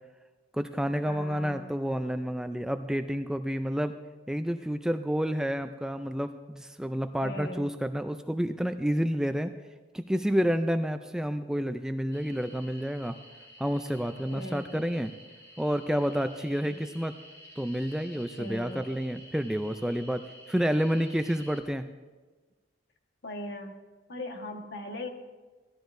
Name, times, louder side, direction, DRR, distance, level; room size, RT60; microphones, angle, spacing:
voice 1, 0.5-3.9 4.3-9.5 9.9-13.2 13.6-15.1 15.6-17.1 17.6-21.9, equal, 5° right, 8 dB, 0.3 m, -29 dB
voice 2, 1.0-1.7 7.2-7.7 14.3-14.9 16.7-16.8 18.4-18.9 23.2-23.7 24.1-25.1, left 1 dB, 60° left, 3 dB, 1.4 m, -39 dB
sound 1, 12.1-21.6, equal, 15° left, 2.7 m, -51 dB
17.0 x 12.5 x 2.6 m, 1.3 s
head